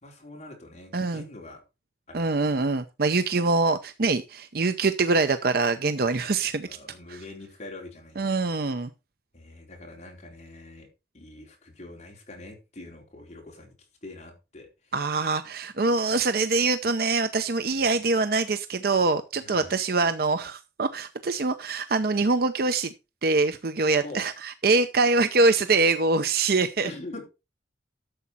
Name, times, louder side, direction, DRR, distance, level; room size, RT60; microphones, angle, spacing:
voice 1, 0.0-1.6 2.1-2.6 5.9-8.4 9.3-10.9 11.1-13.7 14.0-14.9 17.7-17.9 19.4-19.8 24.0-24.2 26.8-27.3, left 2 dB, 40° left, 4.2 m, -44 dB
voice 2, 0.9-1.3 2.1-6.7 7.1-7.2 8.2-8.9 14.9-22.9 23.2-26.9, right 3 dB, 60° right, 0.7 m, -24 dB
12.5 x 7.2 x 4.1 m
head